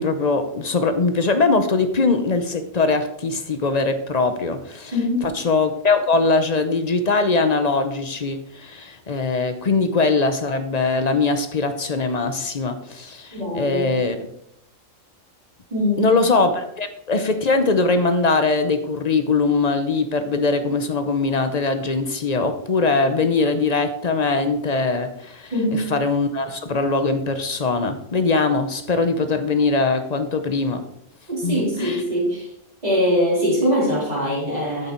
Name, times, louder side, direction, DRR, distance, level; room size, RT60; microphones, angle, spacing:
voice 1, 0.0-4.9 5.2-14.2 16.0-30.8 31.4-32.0, left 3 dB, 40° left, 9 dB, 0.6 m, -21 dB
voice 2, 4.9-5.3 13.3-13.9 15.7-16.1 25.5-25.9 31.3-32.5 32.8-34.9, equal, 30° right, -4 dB, 3.2 m, -22 dB
8.8 x 6.8 x 4.4 m, 0.76 s
omnidirectional pair, 1.4 m